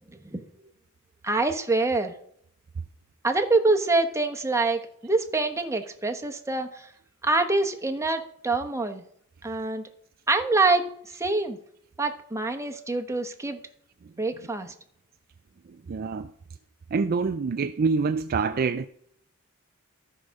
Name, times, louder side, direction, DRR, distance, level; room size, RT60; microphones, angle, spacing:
voice 1, 1.2-2.1 3.2-6.9 7.2-9.0 9.4-9.8 10.3-11.6 12.0-13.6 14.2-14.7, right 3 dB, 15° right, 1.0 m, -25 dB
voice 2, 15.9-16.3 16.9-18.9, right 4 dB, 45° right, 0.4 m, -26 dB
13.5 x 4.9 x 6.4 m
head